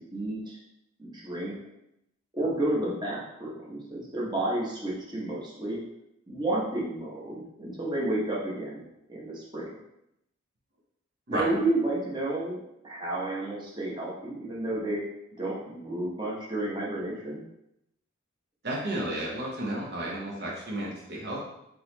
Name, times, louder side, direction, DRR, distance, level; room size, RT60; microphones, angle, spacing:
voice 1, 0.1-0.6 1.0-1.5 2.3-5.8 6.3-8.8 9.1-9.7 11.3-12.6 12.8-15.0 15.4-17.4, right 1 dB, 20° right, -5 dB, 1.0 m, -31 dB
voice 2, 18.6-21.4, right 1 dB, 50° right, -4 dB, 0.8 m, -32 dB
3.8 x 3.0 x 3.9 m, 0.82 s
head